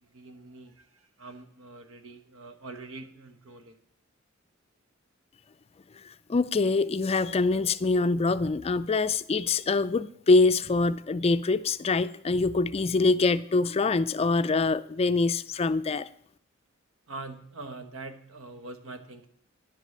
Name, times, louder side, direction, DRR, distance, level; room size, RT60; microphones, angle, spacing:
voice 1, 0.0-3.8 17.1-19.3, right 3 dB, 85° right, 1.3 m, -44 dB
voice 2, 6.0-16.1, left 3 dB, 30° left, 0.4 m, -24 dB
10.5 x 8.2 x 6.6 m
head